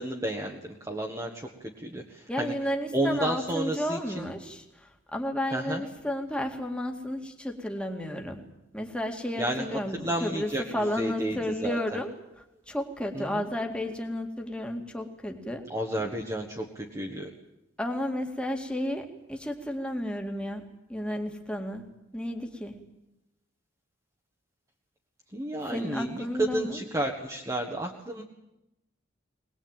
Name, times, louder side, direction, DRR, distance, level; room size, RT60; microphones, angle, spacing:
voice 1, 0.0-2.5 2.9-4.3 5.5-5.8 9.4-9.7 10.0-12.0 13.1-13.5 15.7-17.3 25.3-28.2, right 1 dB, 15° right, -1 dB, 1.6 m, -32 dB
voice 2, 2.3-8.4 8.7-12.1 12.7-15.6 17.8-20.6 20.9-21.8 22.1-22.8 25.7-26.8, left 1 dB, 5° left, 3 dB, 2.2 m, -32 dB
22.0 x 20.0 x 9.1 m, 0.91 s
head